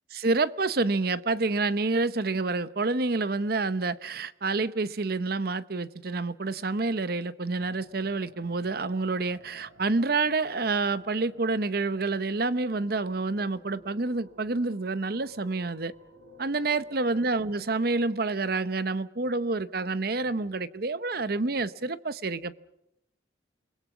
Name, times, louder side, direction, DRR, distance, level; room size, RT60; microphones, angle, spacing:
voice 1, 0.1-15.9 16.4-22.6, right 3 dB, 55° right, 0.8 m, -28 dB
sound 1, 7.5-18.2, right 1 dB, 85° right, 5.2 m, -55 dB
28.5 x 21.0 x 6.1 m
head